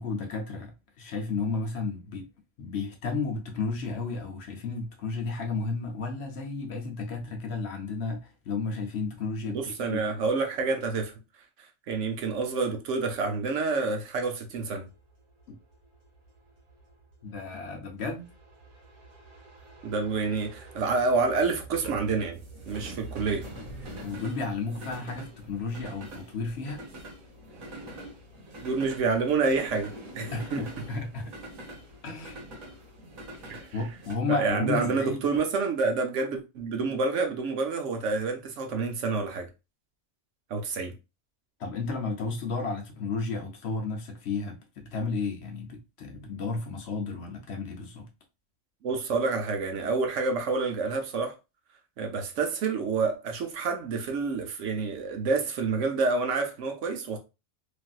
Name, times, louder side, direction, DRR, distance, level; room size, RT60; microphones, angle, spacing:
voice 1, 0.0-2.3 2.6-9.6 9.9-10.0 17.2-18.3 24.0-26.8 30.3-31.3 32.0-32.4 33.7-35.2 41.6-48.1, left 4 dB, 65° left, 0.8 m, -33 dB
voice 2, 9.5-11.1 11.9-14.9 19.8-22.4 22.7-23.5 28.6-30.7 33.5-33.8 34.3-39.5 40.5-41.0 48.8-51.3 52.0-57.2, right 4 dB, 70° right, 1.0 m, -28 dB
sound 1, 14.6-34.1, right 1 dB, 85° right, 1.5 m, -45 dB
3.2 x 2.5 x 2.3 m
omnidirectional pair, 1.4 m